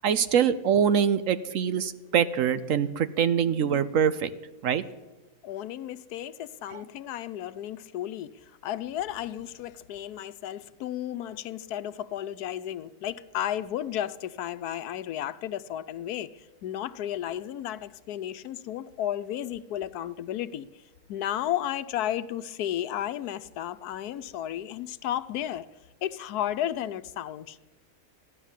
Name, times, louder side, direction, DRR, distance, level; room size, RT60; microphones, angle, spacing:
voice 1, 0.0-4.3 4.6-4.8 6.7-6.8, right 8 dB, 65° right, 13 dB, 1.0 m, -24 dB
voice 2, 5.4-8.3 8.6-20.8 21.1-25.7 26.0-27.7, left 11 dB, 85° left, 14 dB, 1.2 m, -33 dB
15.0 x 11.0 x 7.3 m, 1.1 s
omnidirectional pair, 1.6 m